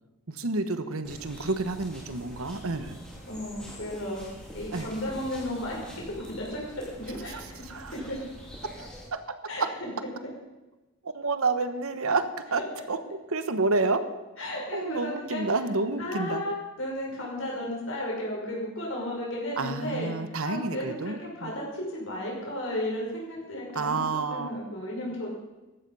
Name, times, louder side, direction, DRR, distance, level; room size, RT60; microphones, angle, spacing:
voice 1, 0.3-3.0 4.7-4.9 7.7-7.9 8.6-9.2 9.6-9.7 11.0-13.0 13.3-14.0 14.4-16.4 19.6-21.5 23.7-24.5, right 3 dB, 80° right, 10 dB, 1.2 m, -29 dB
sound 1, 1.0-9.0, equal, 5° left, 3.7 m, -45 dB
voice 2, 3.2-4.2 4.5-5.9 6.4-6.6 7.0-7.6 7.9-8.2 9.5-10.1 12.6-12.7 14.4-15.4 16.0-24.0 24.3-25.3, left 1 dB, 65° left, -2 dB, 6.0 m, -34 dB
14.5 x 12.5 x 5.5 m, 1.1 s
head